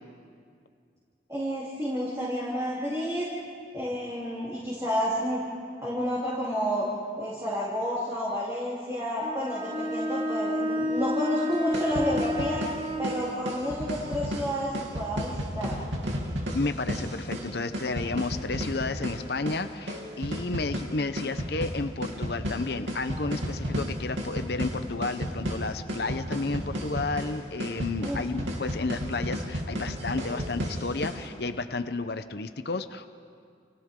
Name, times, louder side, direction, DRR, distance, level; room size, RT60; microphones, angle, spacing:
voice 1, 1.3-3.3 3.7-5.4 5.8-6.9 7.2-12.6 13.0-15.7 28.0-28.2, equal, 15° right, -8 dB, 3.5 m, -30 dB
Bowed string instrument, 9.2-13.2, left 1 dB, 35° right, 3.9 m, -30 dB
sound 1, 11.5-31.3, equal, 85° right, 3.0 m, -33 dB
voice 2, 16.5-33.1, left 3 dB, 60° left, 9 dB, 0.8 m, -32 dB
30.0 x 29.5 x 3.8 m, 2.3 s
head